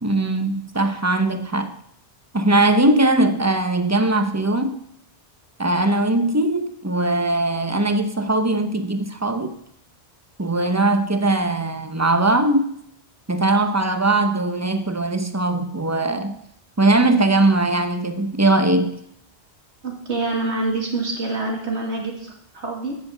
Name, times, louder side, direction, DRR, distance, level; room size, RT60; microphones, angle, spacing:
voice 1, 0.0-1.8 2.3-4.8 5.6-9.6 10.4-12.7 13.3-16.4 16.8-18.9, right 2 dB, 15° right, 0.9 m, -20 dB
voice 2, 19.8-23.0, right 2 dB, 80° right, 2.6 m, -26 dB
10.5 x 7.9 x 7.1 m
omnidirectional pair, 1.1 m